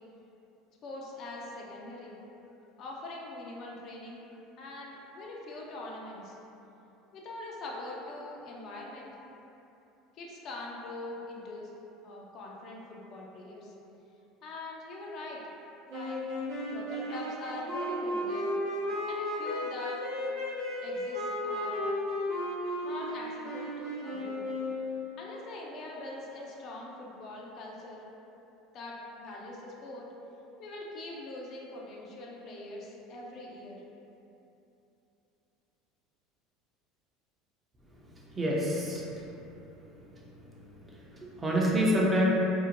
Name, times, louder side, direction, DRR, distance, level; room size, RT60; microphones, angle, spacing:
voice 1, 0.8-2.1 2.8-4.2 4.6-6.3 7.1-9.1 10.2-11.7 12.0-13.7 14.4-15.4 15.9-16.2 16.7-18.5 19.1-20.0 20.8-21.9 22.8-24.5 25.2-28.0 28.7-30.1 30.6-33.8, left 2 dB, 55° left, -2 dB, 0.4 m, -43 dB
sound 1, 15.9-25.1, left 1 dB, 70° right, 0.7 m, -34 dB
voice 2, 38.3-39.2 40.1-40.2 40.9-42.3, equal, 20° right, -4 dB, 0.5 m, -27 dB
2.6 x 2.0 x 2.7 m, 2.9 s
hypercardioid pair, 85°, 0 cm